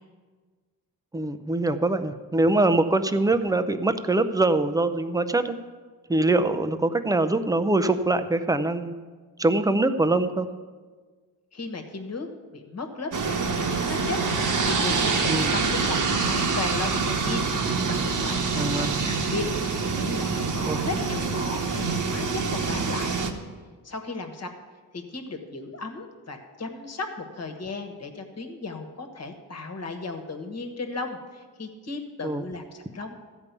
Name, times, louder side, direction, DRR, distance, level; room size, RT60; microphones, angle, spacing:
voice 1, 1.1-5.5 6.1-8.9 9.4-10.5 15.3-15.5 18.6-18.9 20.7-20.8 32.2-32.4, right 2 dB, 10° right, 9 dB, 0.5 m, -23 dB
voice 2, 11.5-19.5 20.0-23.2 23.8-24.5 24.9-33.2, left 3 dB, 40° left, 6 dB, 1.4 m, -35 dB
sound 1, 13.1-23.3, right 4 dB, 55° right, 1.2 m, -26 dB
14.0 x 5.3 x 8.2 m, 1.4 s
cardioid pair, 110°, 38 cm